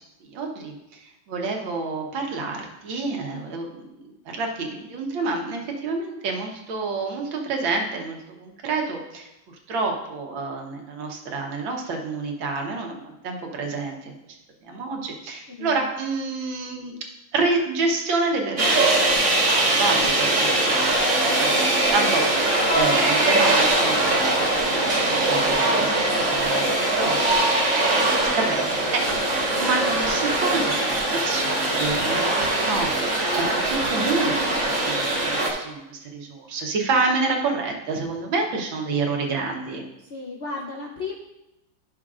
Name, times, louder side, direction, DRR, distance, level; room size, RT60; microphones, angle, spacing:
voice 1, 0.2-0.7 1.3-4.0 4.3-9.3 9.7-14.1 14.6-17.0 17.3-24.0 24.4-27.4 28.3-28.7 28.9-29.2 29.6-39.8, right 3 dB, 85° right, 1 dB, 1.8 m, -28 dB
sound 1, 18.6-35.5, right 2 dB, 45° right, 1.5 m, -21 dB
voice 2, 26.9-27.4 27.9-28.0 40.1-41.1, left 4 dB, 65° left, -1 dB, 0.6 m, -36 dB
11.5 x 6.2 x 2.4 m, 0.92 s
omnidirectional pair, 2.1 m